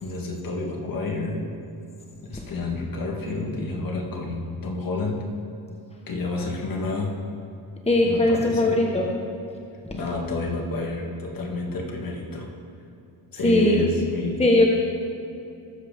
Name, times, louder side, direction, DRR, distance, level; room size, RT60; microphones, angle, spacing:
voice 1, 0.0-1.5 2.2-5.3 6.1-7.2 8.0-8.8 9.9-12.5 13.3-14.4, left 3 dB, 50° left, -1 dB, 2.6 m, -30 dB
voice 2, 7.9-9.1 13.4-13.9 14.4-14.7, left 1 dB, 15° left, 0 dB, 1.4 m, -19 dB
20.5 x 7.6 x 3.7 m, 2.7 s
supercardioid pair, 70°, 44 cm